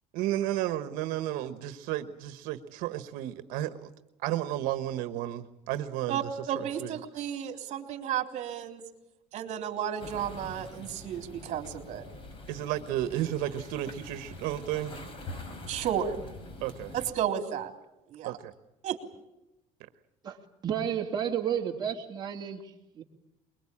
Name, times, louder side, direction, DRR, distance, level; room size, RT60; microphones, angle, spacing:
voice 1, 0.1-3.9 4.2-6.9 12.5-15.0 16.6-16.9 18.2-18.5, right 13 dB, 90° right, 1.2 m, -33 dB
voice 2, 6.1-8.8 9.3-12.0 15.7-16.2 16.9-17.7 18.1-18.3 18.8-19.0, right 9 dB, 55° right, 3.6 m, -33 dB
sound 1, 10.0-17.1, left 2 dB, 40° left, 4.2 m, -45 dB
voice 3, 20.6-22.6 22.9-23.0, right 9 dB, 30° right, 2.7 m, -31 dB
23.5 x 22.5 x 8.6 m
cardioid pair, 150°, 14 cm